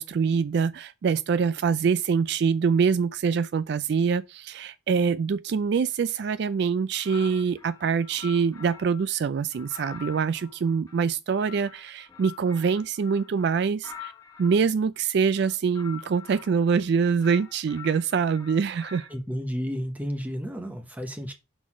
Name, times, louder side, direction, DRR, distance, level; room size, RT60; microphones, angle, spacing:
voice 1, 0.0-14.1 14.4-19.1, right 6 dB, 55° right, 0.3 m, -25 dB
sound 1, 6.9-9.1 9.5-14.6 15.3-16.9 17.2-19.2, left 9 dB, 15° left, 1.1 m, -46 dB
voice 2, 19.1-21.3, equal, 10° right, 0.9 m, -32 dB
6.0 x 3.8 x 6.1 m
head